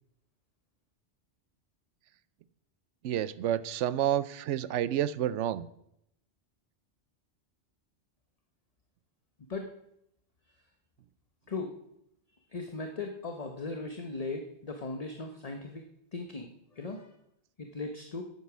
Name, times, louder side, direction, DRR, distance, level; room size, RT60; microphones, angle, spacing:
voice 1, 3.0-5.7, right 11 dB, 80° right, 16 dB, 0.9 m, -29 dB
voice 2, 12.5-15.8 16.1-16.5 16.8-17.1 17.6-18.2, left 3 dB, 35° left, 5 dB, 1.0 m, -38 dB
10.5 x 8.7 x 6.1 m, 0.77 s
omnidirectional pair, 1.2 m